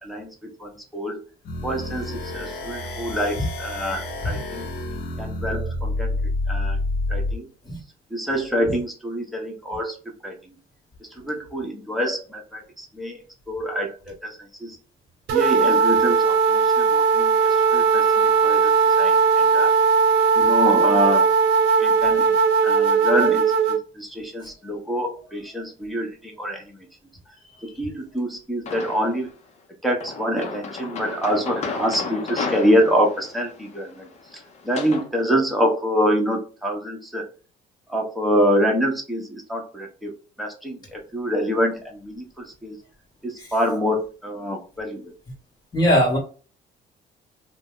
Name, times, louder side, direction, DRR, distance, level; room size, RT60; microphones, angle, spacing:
voice 1, 0.0-1.2 1.6-4.7 5.2-6.2 6.5-6.8 7.1-7.5 8.1-10.0 10.2-10.5 11.1-14.8 15.3-19.7 20.4-21.3 21.8-22.4 22.6-26.8 27.6-29.3 29.8-37.3 37.9-42.8 43.2-45.0, equal, ahead, -1 dB, 0.9 m, -26 dB
sound 1, 1.4-7.4, left 2 dB, 70° left, 0.8 m, -28 dB
sound 2, 15.3-23.8, right 5 dB, 80° right, 0.7 m, -18 dB
sound 3, 28.7-29.3 30.0-35.1, left 4 dB, 40° left, 0.7 m, -33 dB
voice 2, 45.7-46.2, equal, 25° left, -2 dB, 1.2 m, -19 dB
2.7 x 2.1 x 3.7 m, 0.37 s
cardioid pair, 110°, 17 cm